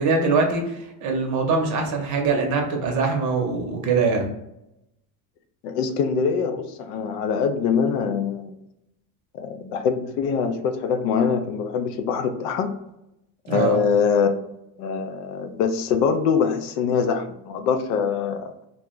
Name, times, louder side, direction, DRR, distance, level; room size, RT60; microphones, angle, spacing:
voice 1, 0.0-4.3 13.5-13.8, right 4 dB, 40° right, 2 dB, 0.7 m, -23 dB
voice 2, 5.6-8.5 9.3-12.8 13.5-14.4 14.8-18.5, left 6 dB, 85° left, 8 dB, 0.5 m, -23 dB
2.4 x 2.1 x 3.6 m, 0.86 s
supercardioid pair, 130°, 46 cm